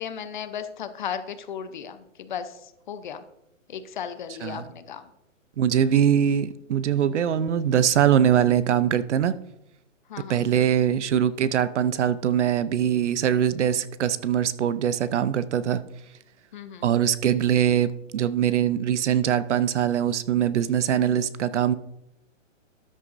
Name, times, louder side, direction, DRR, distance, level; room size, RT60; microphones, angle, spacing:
voice 1, 0.0-3.2 3.7-5.0 10.1-10.4 16.5-16.9, left 8 dB, 40° left, 11 dB, 0.7 m, -35 dB
voice 2, 4.3-4.6 5.6-9.3 10.3-15.8 16.8-21.7, right 9 dB, 60° right, 16 dB, 0.7 m, -22 dB
13.0 x 9.9 x 2.6 m, 0.86 s
hypercardioid pair, 155°, 39 cm